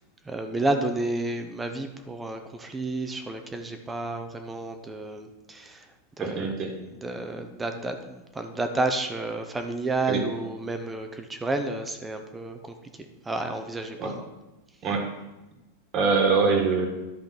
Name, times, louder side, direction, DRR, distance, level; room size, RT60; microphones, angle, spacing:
voice 1, 0.3-5.9 6.2-6.5 7.0-12.7 13.2-14.2, right 2 dB, 10° right, 7 dB, 0.7 m, -31 dB
voice 2, 6.2-6.7 10.1-10.2 14.0-14.1 14.8-15.1 15.9-16.9, right 4 dB, 30° right, 3 dB, 1.6 m, -23 dB
11.0 x 5.1 x 6.0 m, 1.0 s
supercardioid pair, 155°, 0 cm